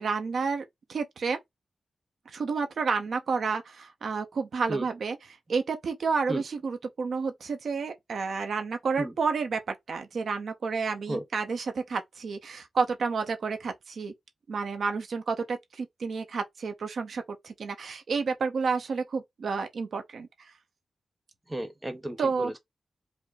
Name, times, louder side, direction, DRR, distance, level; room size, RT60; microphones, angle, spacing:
voice 1, 0.0-1.4 2.3-5.2 5.5-14.1 14.5-20.3 22.2-22.5, right 5 dB, 75° right, 0.8 m, -30 dB
voice 2, 21.5-22.6, right 1 dB, 20° right, 1.1 m, -33 dB
5.1 x 2.1 x 4.0 m
wide cardioid pair, 90°, 0 cm